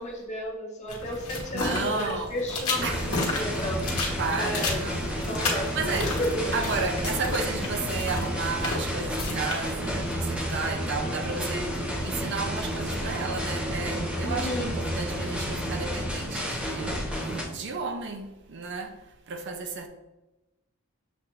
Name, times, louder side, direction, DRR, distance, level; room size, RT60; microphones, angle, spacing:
voice 1, 0.0-3.9 4.4-4.8 5.3-5.7 6.0-6.5 14.2-14.7, left 1 dB, 30° left, 0.8 m, -32 dB
sound 1, 0.9-10.9, left 3 dB, 85° left, 1.1 m, -34 dB
voice 2, 1.5-2.4 2.8-3.3 4.2-5.2 5.7-6.2 6.5-18.9 19.3-19.9, right 4 dB, 55° right, 0.5 m, -33 dB
sound 2, 2.7-17.4, equal, 5° right, 0.9 m, -31 dB
7.0 x 2.4 x 2.9 m
head